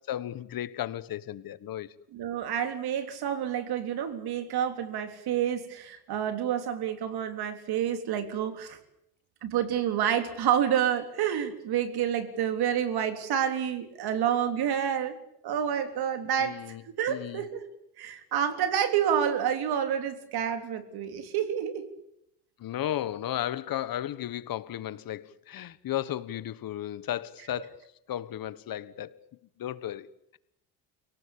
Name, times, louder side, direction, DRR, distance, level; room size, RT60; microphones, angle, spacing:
voice 1, 0.1-1.9 16.4-16.8 17.1-17.5 22.6-27.7 28.1-29.2 29.6-30.1, left 12 dB, 60° left, 1.5 m, -34 dB
voice 2, 2.1-8.8 9.4-15.1 15.4-16.6 17.0-17.6 18.0-21.8, right 9 dB, 70° right, 3.7 m, -28 dB
29.5 x 18.0 x 8.7 m
supercardioid pair, 85°, 40 cm